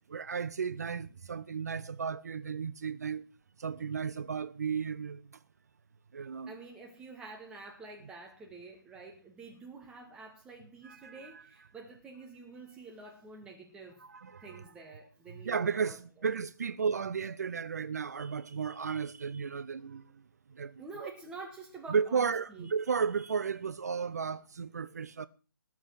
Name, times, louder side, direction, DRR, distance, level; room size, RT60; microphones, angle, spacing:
voice 1, 0.1-3.2 3.6-5.2 6.1-6.5 10.8-11.4 14.0-14.6 15.4-20.0 20.5-21.1 21.9-25.3, right 6 dB, 40° right, 0.7 m, -34 dB
voice 2, 6.5-14.0 14.4-16.3 20.8-22.7, right 3 dB, 5° right, 1.7 m, -48 dB
19.5 x 7.4 x 7.4 m
figure-of-eight pair, 145°, 13 cm